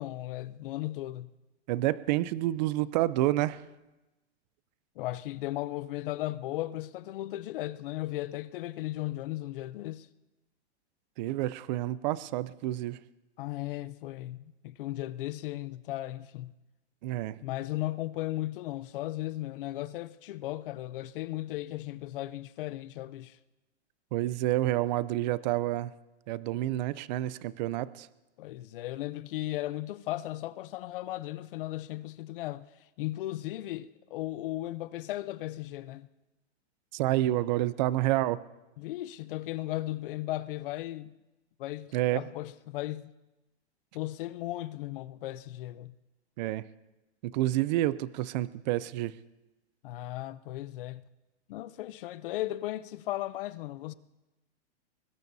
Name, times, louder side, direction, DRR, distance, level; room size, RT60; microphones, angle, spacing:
voice 1, 0.0-1.3 5.0-10.1 13.4-16.6 17.4-23.4 28.4-32.7 33.0-36.1 38.8-41.1 41.6-43.1 43.9-45.9 49.8-51.0 51.5-53.9, left 16 dB, 50° left, 0.6 m, -36 dB
voice 2, 1.7-3.6 11.2-13.0 17.0-17.4 24.1-25.9 26.3-28.1 36.9-38.4 41.9-42.2 46.4-46.6 47.2-49.1, right 15 dB, 40° right, 0.5 m, -29 dB
24.0 x 20.0 x 2.7 m
hypercardioid pair, 145°, 35 cm